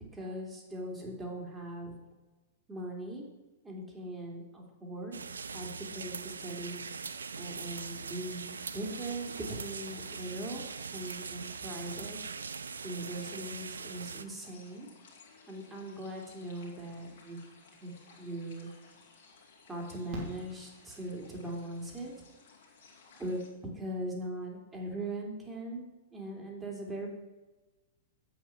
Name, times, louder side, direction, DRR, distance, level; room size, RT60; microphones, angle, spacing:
voice 1, 0.0-2.0 2.7-3.2 3.6-5.2 5.5-6.8 7.3-10.6 10.9-12.2 12.8-14.9 15.5-17.4 17.8-18.7 19.7-22.1 23.2-23.4 23.7-25.8 26.1-27.1, right 1 dB, 15° right, 0 dB, 2.9 m, -40 dB
sound 1, 5.1-14.2, right 5 dB, 75° right, 0.5 m, -41 dB
sound 2, 6.4-23.5, left 4 dB, 60° left, 2.7 m, -58 dB
Fireworks, 20.1-21.4 23.2-23.3 23.5-23.6, equal, 40° right, 3.1 m, -45 dB
8.1 x 8.1 x 5.8 m, 1.2 s
figure-of-eight pair, 100°, 0 cm